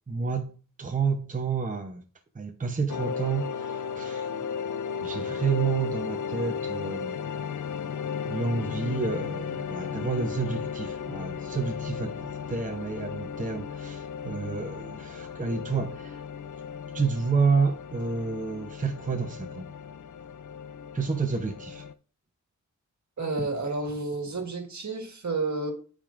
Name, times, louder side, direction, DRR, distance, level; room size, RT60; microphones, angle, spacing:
voice 1, 0.1-0.5 0.8-2.0 2.3-4.3 5.0-7.2 8.3-16.2 16.9-19.7 20.9-21.9, right 5 dB, 25° right, 0.8 m, -29 dB
sound 1, 2.9-21.9, left 7 dB, 70° left, 0.5 m, -35 dB
voice 2, 23.2-25.7, right 3 dB, 60° right, 1.7 m, -30 dB
12.0 x 5.1 x 2.5 m
wide cardioid pair, 95°, 32 cm